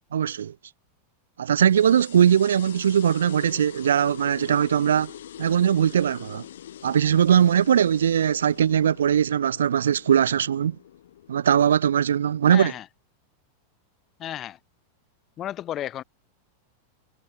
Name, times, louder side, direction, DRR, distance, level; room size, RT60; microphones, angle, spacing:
voice 1, 0.1-0.5 1.4-5.1 5.4-6.4 6.8-10.8 11.3-12.7, right 9 dB, 65° right, 0.6 m, -20 dB
sound 1, 1.6-12.6, left 11 dB, 60° left, 4.3 m, -44 dB
voice 2, 12.5-12.8 14.2-14.6 15.4-16.0, left 12 dB, 30° left, 2.5 m, -33 dB
figure-of-eight pair, 90°, 0 cm